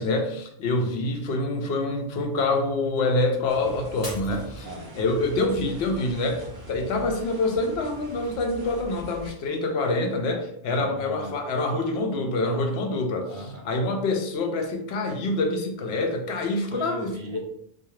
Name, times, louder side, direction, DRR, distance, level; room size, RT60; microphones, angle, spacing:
voice 1, 0.0-4.7 5.0-13.3 13.7-17.1, left 2 dB, 85° left, 4 dB, 0.8 m, -26 dB
sound 1, 3.5-9.3, right 1 dB, 25° right, 1.0 m, -42 dB
Shatter, 4.0-5.3 5.8-6.3 6.8-6.9, left 1 dB, 60° left, 1.1 m, -41 dB
voice 2, 4.6-4.9 10.7-11.3 13.3-13.6 16.7-17.5, right 1 dB, 55° right, 0 dB, 0.8 m, -38 dB
2.3 x 2.3 x 3.0 m, 0.70 s
omnidirectional pair, 1.0 m